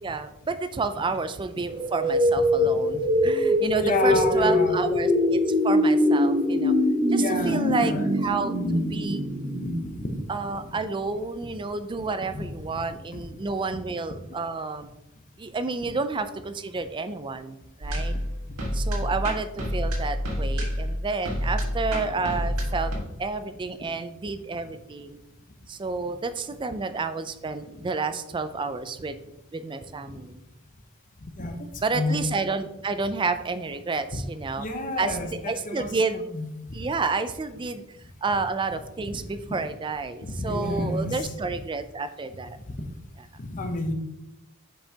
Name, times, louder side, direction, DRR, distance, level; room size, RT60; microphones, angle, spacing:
voice 1, 0.0-6.7 7.1-9.2 10.3-14.9 15.4-18.1 18.7-22.9 23.2-25.2 25.7-29.2 29.5-30.4 31.8-34.7 35.0-35.2 35.5-36.2 36.7-37.8 38.2-42.6, right 4 dB, 20° right, 11 dB, 0.4 m, -30 dB
sound 1, 1.7-10.6, left 1 dB, 40° right, 1.6 m, -23 dB
voice 2, 3.8-4.8 7.2-8.1 9.6-9.7 10.0-10.2 12.3-12.5 13.1-13.2 27.7-27.8 31.2-31.6 31.9-32.2 34.6-36.5 39.1-39.2 40.2-41.3 43.4-43.9, left 2 dB, 35° left, 5 dB, 0.8 m, -30 dB
sound 2, 17.8-23.0, equal, 80° right, 1.6 m, -28 dB
7.1 x 5.4 x 2.8 m, 0.89 s
head